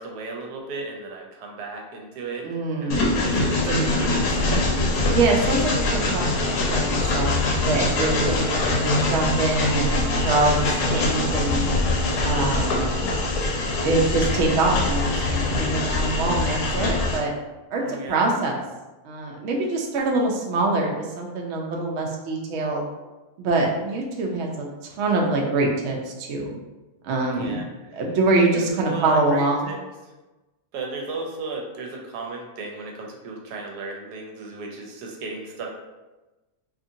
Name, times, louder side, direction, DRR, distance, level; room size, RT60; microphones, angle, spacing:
voice 1, 0.0-2.5 2.8-5.0 17.8-18.3 27.3-28.0 28.4-28.5 28.9-29.8 30.7-35.7, right 4 dB, 85° right, 0 dB, 1.1 m, -35 dB
voice 2, 2.4-3.1 5.1-11.7 12.2-12.9 13.8-17.3 17.7-18.6 19.0-22.8 23.4-24.7 25.0-26.6 27.0-27.6 27.9-29.7, right 2 dB, 65° right, 0 dB, 0.7 m, -24 dB
Train, 2.9-17.2, left 2 dB, 70° left, 1.0 m, -23 dB
2.8 x 2.6 x 2.6 m, 1.1 s
omnidirectional pair, 1.7 m